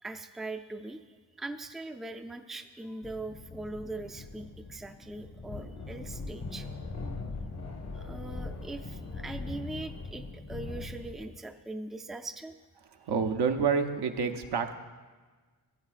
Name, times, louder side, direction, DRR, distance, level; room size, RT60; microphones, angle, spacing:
voice 1, 0.0-1.0 1.4-6.7 7.9-12.6, right 2 dB, ahead, 6 dB, 0.4 m, -41 dB
sound 1, 3.0-11.4, left 3 dB, 60° left, 1.2 m, -41 dB
voice 2, 13.1-14.7, right 6 dB, 70° right, 6 dB, 0.8 m, -28 dB
15.0 x 8.7 x 2.5 m, 1.4 s
cardioid pair, 60°, 41 cm